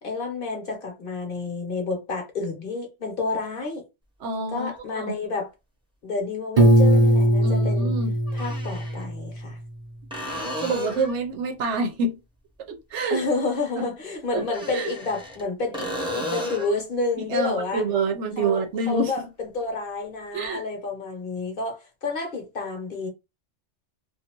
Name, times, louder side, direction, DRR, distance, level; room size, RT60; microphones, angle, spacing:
voice 1, 0.0-3.8 4.5-5.5 6.0-8.0 8.3-9.6 12.9-17.8 18.4-23.1, left 3 dB, 50° left, 1.0 m, -30 dB
voice 2, 4.2-5.1 7.4-8.2 10.6-12.2 12.7-13.2 14.3-14.4 14.7-14.9 17.3-19.1 20.3-20.6, right 3 dB, 75° right, 1.0 m, -27 dB
sound 1, 4.8-4.9 6.9-7.0 8.3-9.0 10.1-11.2 14.4-15.4 15.7-16.8 20.4-20.5, left 1 dB, 5° right, 0.8 m, -33 dB
Piano, 6.6-9.5, right 1 dB, 35° right, 0.8 m, -19 dB
2.6 x 2.5 x 2.9 m
omnidirectional pair, 1.2 m